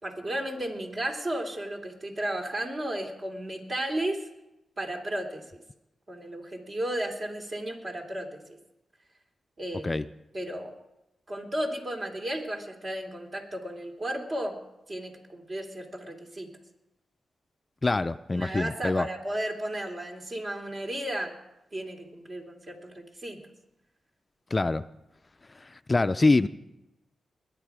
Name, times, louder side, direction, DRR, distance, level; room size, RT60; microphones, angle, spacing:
voice 1, 0.0-4.3 4.8-5.4 6.1-8.6 9.6-9.9 10.3-10.7 11.3-14.6 14.9-16.5 18.3-21.3 21.7-23.4, right 1 dB, 50° right, 3.1 m, -34 dB
voice 2, 17.8-19.1 24.5-24.8 25.6-26.5, left 3 dB, 30° left, 0.4 m, -25 dB
21.5 x 9.0 x 4.9 m
cardioid pair, 55°, 0 cm